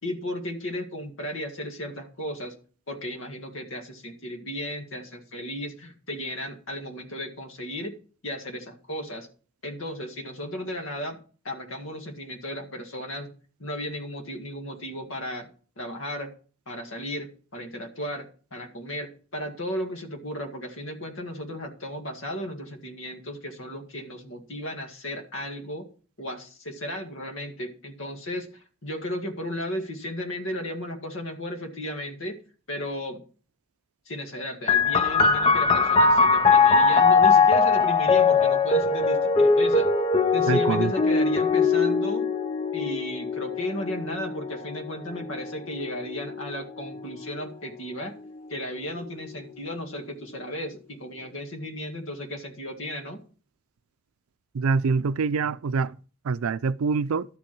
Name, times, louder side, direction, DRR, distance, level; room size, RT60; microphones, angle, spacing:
voice 1, 0.0-2.6 2.9-8.0 8.2-9.3 9.6-11.2 11.4-13.3 13.6-16.3 16.7-25.9 26.2-32.4 32.7-33.2 34.1-39.9 40.3-42.3 42.7-48.2 48.5-53.2, equal, 65° left, 1.9 m, -35 dB
sound 1, 34.7-47.9 48.8-49.5, left 4 dB, 25° left, 0.7 m, -22 dB
voice 2, 40.5-40.9 54.5-55.9 56.2-57.3, right 5 dB, 85° right, 0.4 m, -25 dB
12.0 x 7.7 x 4.6 m
head